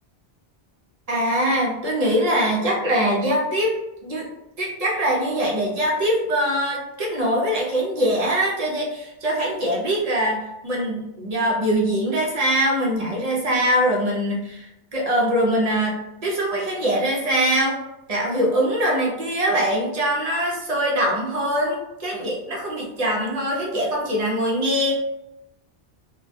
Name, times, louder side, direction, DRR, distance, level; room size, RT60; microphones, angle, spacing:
voice 1, 1.1-3.7 4.0-4.3 4.6-17.8 18.1-25.0, equal, 45° right, -3 dB, 0.5 m, -23 dB
2.1 x 2.1 x 2.7 m, 0.89 s
omnidirectional pair, 1.1 m